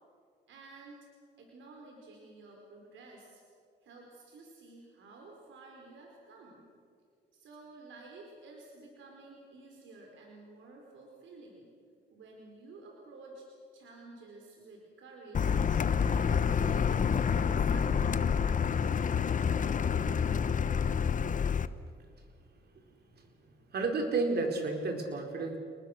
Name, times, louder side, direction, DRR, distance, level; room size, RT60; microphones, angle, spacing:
voice 1, 0.5-1.1 1.4-3.4 3.8-6.7 7.3-11.7 12.1-13.5 13.7-15.6 16.0-18.0, right 3 dB, 75° right, 0 dB, 4.7 m, -52 dB
Car, 15.3-21.7, left 7 dB, 40° left, 1.0 m, -28 dB
voice 2, 23.1-25.6, right 3 dB, 55° right, 4 dB, 4.3 m, -32 dB
29.0 x 20.5 x 6.7 m, 2.2 s
cardioid pair, 90°, 20 cm